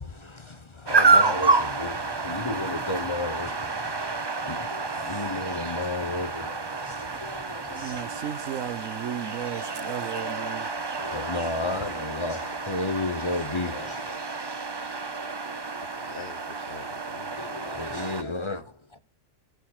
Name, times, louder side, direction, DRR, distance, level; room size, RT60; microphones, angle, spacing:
voice 1, 0.0-8.2 11.0-14.2 17.4-19.0, left 2 dB, 25° left, 0.9 m, -33 dB
sound 1, 0.9-18.2, right 3 dB, 25° right, 0.7 m, -29 dB
voice 2, 7.7-10.7, right 10 dB, 90° right, 1.2 m, -35 dB
voice 3, 15.8-17.4, left 7 dB, 55° left, 1.0 m, -45 dB
20.5 x 6.9 x 4.8 m
omnidirectional pair, 1.3 m